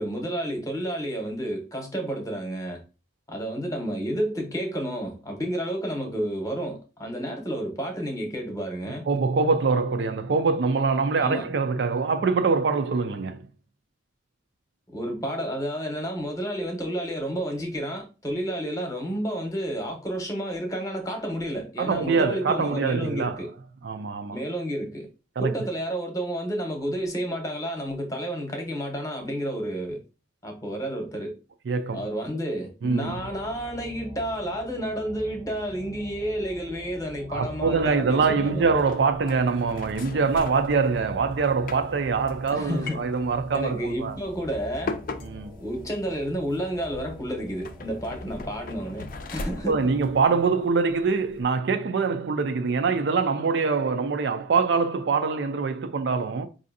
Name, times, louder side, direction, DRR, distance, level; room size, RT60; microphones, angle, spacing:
voice 1, 0.0-2.8 3.3-9.1 11.2-11.5 14.9-23.5 24.3-25.1 25.4-30.0 30.4-31.4 31.9-38.7 42.5-43.0 43.5-45.0 45.6-49.9, equal, 20° left, 0.8 m, -31 dB
voice 2, 9.1-13.5 21.8-23.5 23.8-24.4 25.4-25.5 31.7-32.1 32.8-33.2 37.3-44.2 45.2-45.5 49.7-56.5, right 4 dB, 65° right, 0.4 m, -24 dB
sound 1, 33.1-50.2, left 1 dB, 10° right, 0.5 m, -44 dB
sound 2, 37.8-51.4, left 3 dB, 50° left, 0.4 m, -41 dB
4.8 x 2.6 x 2.6 m
head